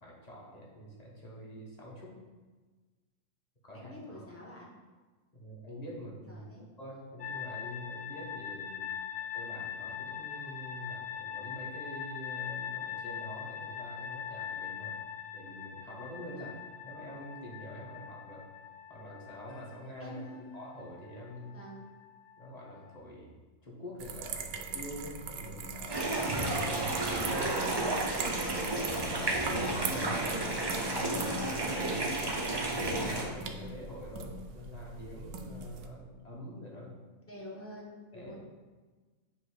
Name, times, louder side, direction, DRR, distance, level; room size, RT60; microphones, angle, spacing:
voice 1, 0.0-2.2 3.6-4.2 5.3-6.4 6.8-8.9 9.3-15.0 15.3-16.5 16.8-18.5 18.9-20.2 20.5-21.6 22.4-23.3 23.6-26.1 26.5-28.0 29.0-29.5 29.8-36.9 38.1-38.3, equal, 25° left, -3 dB, 1.2 m, -46 dB
voice 2, 3.7-4.7 6.3-6.6 8.7-9.0 16.3-16.5 20.0-20.4 21.4-21.9 29.3-29.7 37.2-38.4, left 1 dB, 10° left, -4 dB, 0.8 m, -47 dB
sound 1, 7.2-23.0, left 8 dB, 70° left, 0.5 m, -42 dB
sound 2, 24.0-35.9, right 4 dB, 70° right, 1.0 m, -41 dB
sound 3, 25.9-33.2, right 2 dB, 30° right, 0.4 m, -32 dB
7.2 x 3.0 x 4.8 m, 1.3 s
omnidirectional pair, 1.7 m